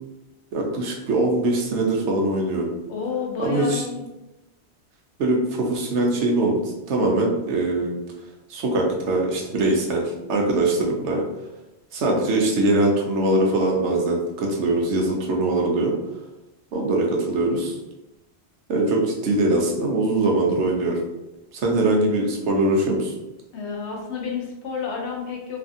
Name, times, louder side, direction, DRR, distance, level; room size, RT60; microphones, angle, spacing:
voice 1, 0.5-2.7 3.4-3.8 5.2-8.0 8.5-11.2 11.9-15.9 16.7-17.8 18.7-21.0 21.5-23.1, right 2 dB, 90° right, -1 dB, 1.0 m, -22 dB
voice 2, 2.9-4.0 23.5-25.6, left 5 dB, 90° left, 0 dB, 1.0 m, -30 dB
2.7 x 2.5 x 2.5 m, 1.0 s
omnidirectional pair, 1.1 m